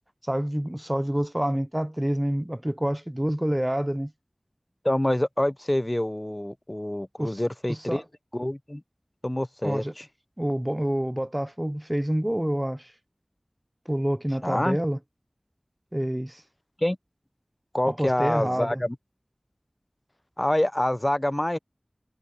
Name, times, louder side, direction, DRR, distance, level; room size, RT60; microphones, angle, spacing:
voice 1, 0.2-4.1 7.2-7.4 7.7-8.0 9.6-9.9 10.4-12.9 13.9-15.0 15.9-16.4 17.9-18.8, equal, 15° right, 0.6 m, -27 dB
voice 2, 4.8-8.0 8.3-8.8 9.2-10.0 14.4-14.8 16.8-17.0 17.7-19.0 20.4-21.6, left 1 dB, 25° left, 0.5 m, -26 dB
wide cardioid pair, 40°, 0 cm